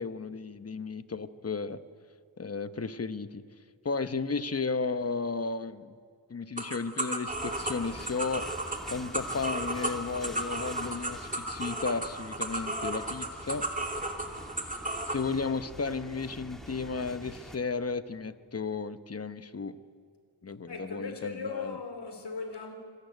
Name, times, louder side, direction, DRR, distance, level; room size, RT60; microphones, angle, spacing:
voice 1, 0.0-1.8 2.4-3.4 3.8-6.0 6.3-8.4 8.9-13.6 15.1-19.7 20.4-21.8, left 4 dB, 30° left, 1.0 m, -34 dB
sound 1, 6.6-15.2, right 1 dB, 15° right, 2.8 m, -34 dB
sound 2, 7.3-17.6, equal, ahead, 2.4 m, -46 dB
voice 2, 20.7-22.7, left 4 dB, 60° left, 3.8 m, -38 dB
25.0 x 13.5 x 9.3 m
cardioid pair, 60°, 47 cm